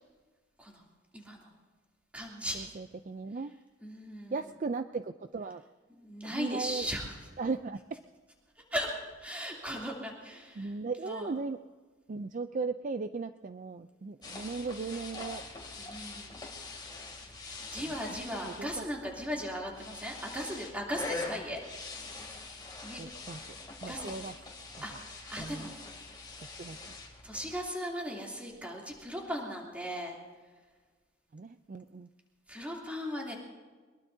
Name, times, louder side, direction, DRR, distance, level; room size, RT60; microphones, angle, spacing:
voice 1, 1.1-1.5 2.1-2.7 3.8-4.4 6.0-7.2 8.7-8.9 9.2-10.7 11.0-11.3 15.8-16.4 17.7-21.6 22.8-23.0 23.9-24.2 24.8-25.7 27.2-30.1 32.5-33.4, equal, 5° right, -2 dB, 2.9 m, -37 dB
voice 2, 2.5-3.5 4.3-5.6 6.2-6.9 7.4-7.8 10.6-11.6 12.1-15.4 18.4-18.8 23.0-23.4 23.8-24.3 25.4-25.7 26.6-26.9 31.3-32.1, right 4 dB, 35° right, 10 dB, 0.4 m, -37 dB
sound 1, 14.2-27.6, left 3 dB, 20° left, 2.7 m, -44 dB
23.0 x 21.5 x 2.7 m, 1.4 s
head